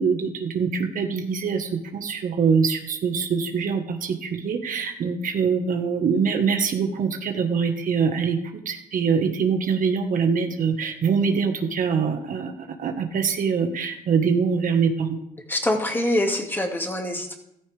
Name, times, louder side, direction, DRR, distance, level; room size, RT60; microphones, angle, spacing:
voice 1, 0.0-8.4 8.6-12.5 12.8-15.2, right 6 dB, 50° right, 5 dB, 1.5 m, -24 dB
voice 2, 15.5-17.4, left 1 dB, 10° left, 2 dB, 2.2 m, -24 dB
14.5 x 13.5 x 3.5 m, 0.82 s
cardioid pair, 110°, 17 cm